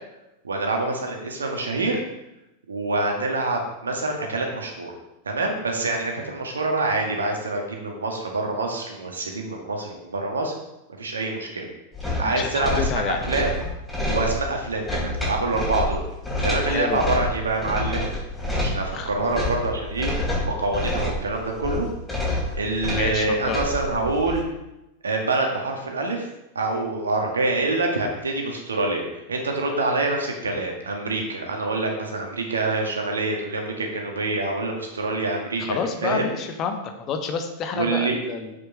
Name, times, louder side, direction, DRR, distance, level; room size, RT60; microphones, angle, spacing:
voice 1, 0.4-2.0 2.7-4.9 5.3-10.5 11.0-11.7 12.2-13.5 14.1-16.0 16.4-18.1 18.6-20.1 20.4-21.9 22.6-24.4 25.0-26.3 26.6-29.0 29.3-36.3 37.7-38.2, right 2 dB, 70° right, 2 dB, 1.8 m, -26 dB
sound 1, 11.9-24.4, left 1 dB, 10° left, 3.4 m, -28 dB
voice 2, 12.2-13.2 16.6-17.0 18.9-19.1 22.9-23.6 35.6-36.8 37.1-38.5, left 6 dB, 35° left, 6 dB, 1.2 m, -29 dB
7.7 x 6.9 x 4.7 m, 0.92 s
figure-of-eight pair, 90°, 0 cm